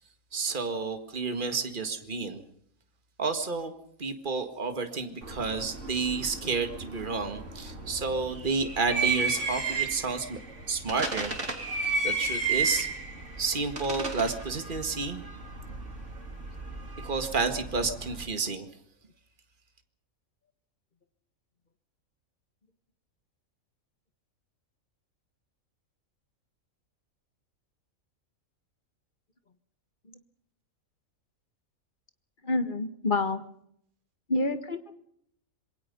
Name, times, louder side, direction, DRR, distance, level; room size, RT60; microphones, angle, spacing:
voice 1, 0.3-2.4 3.2-3.7 4.0-10.4 10.7-11.3 12.0-12.9 13.4-15.2 17.0-18.7, right 4 dB, 35° right, 7 dB, 2.0 m, -30 dB
sound 1, 5.2-18.3, right 4 dB, 60° right, 3.8 m, -34 dB
voice 2, 32.4-33.4 34.3-35.0, left 2 dB, 35° left, 9 dB, 1.8 m, -28 dB
26.5 x 22.5 x 5.4 m, 0.69 s
omnidirectional pair, 1.4 m